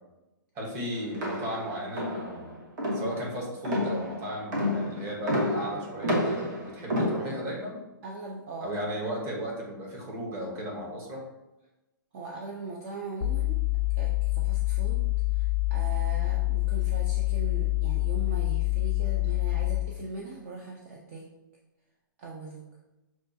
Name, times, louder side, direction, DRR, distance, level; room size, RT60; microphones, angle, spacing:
voice 1, 0.5-2.6 2.9-7.8 8.6-11.2, equal, 25° right, -2 dB, 1.0 m, -35 dB
sound 1, 1.1-7.6, left 1 dB, 55° right, 1.2 m, -30 dB
voice 2, 8.0-8.7 12.1-13.6 14.0-21.3 22.2-22.6, right 3 dB, 40° right, -1 dB, 0.5 m, -40 dB
sound 2, 13.2-20.0, left 20 dB, 50° left, 0.4 m, -26 dB
6.2 x 2.4 x 2.6 m, 1.0 s
hypercardioid pair, 150°, 12 cm